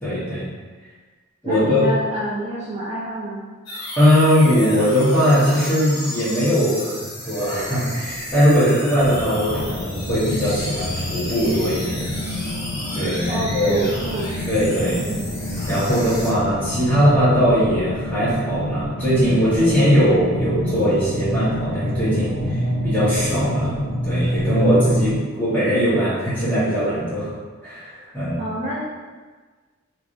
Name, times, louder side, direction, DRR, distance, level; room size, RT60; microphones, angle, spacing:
voice 1, 0.0-0.4 1.4-1.8 3.9-7.0 7.2-12.1 12.9-13.9 14.5-15.0 15.6-22.4 22.8-23.8 24.0-27.3 27.6-28.4, equal, 10° left, -12 dB, 1.4 m, -20 dB
voice 2, 1.4-3.4 12.9-14.3 15.0-15.3 28.1-28.8, right 1 dB, 30° right, -7 dB, 0.4 m, -28 dB
sound 1, 3.7-16.3, left 1 dB, 80° left, 1.1 m, -33 dB
sound 2, 8.9-25.2, equal, 60° left, 1.3 m, -27 dB
3.2 x 3.1 x 2.6 m, 1.4 s
head